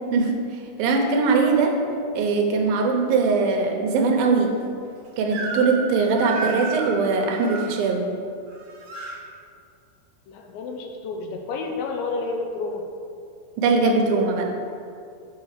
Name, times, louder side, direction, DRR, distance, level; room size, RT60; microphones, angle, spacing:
voice 1, 0.8-1.8 2.2-4.5 5.2-8.0 13.6-14.5, right 4 dB, 80° right, 3 dB, 2.6 m, -21 dB
Crying sobbing / Screech, 5.3-5.9 6.2-7.7 8.5-9.2, right 3 dB, 60° right, 2.0 m, -32 dB
voice 2, 10.3-12.8, left 3 dB, 80° left, 2 dB, 2.4 m, -30 dB
6.2 x 5.8 x 6.5 m, 2.4 s
omnidirectional pair, 4.2 m